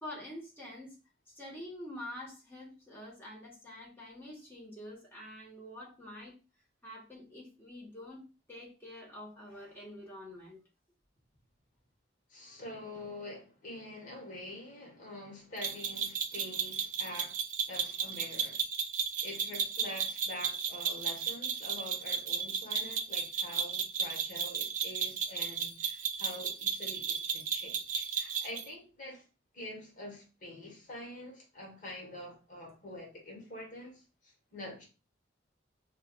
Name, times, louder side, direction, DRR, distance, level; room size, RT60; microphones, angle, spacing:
voice 1, 0.0-1.0 1.3-6.3 6.8-8.2 8.5-10.6, left 1 dB, 10° left, 1.2 m, -46 dB
voice 2, 12.3-17.4 17.7-18.6 19.2-29.2 29.5-34.9, left 1 dB, 45° left, 1.2 m, -46 dB
sound 1, 15.6-28.7, right 6 dB, 45° right, 0.4 m, -34 dB
5.6 x 2.3 x 2.3 m
head